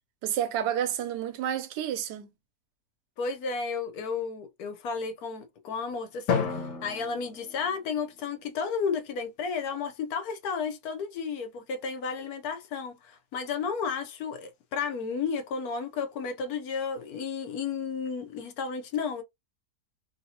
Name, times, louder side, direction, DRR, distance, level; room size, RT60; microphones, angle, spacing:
voice 1, 0.2-2.3, right 10 dB, 80° right, 1.2 m, -30 dB
voice 2, 3.2-19.2, left 5 dB, 70° left, 1.0 m, -33 dB
Drum, 6.3-8.6, left 6 dB, 90° left, 1.5 m, -32 dB
3.2 x 2.7 x 2.7 m
omnidirectional pair, 1.8 m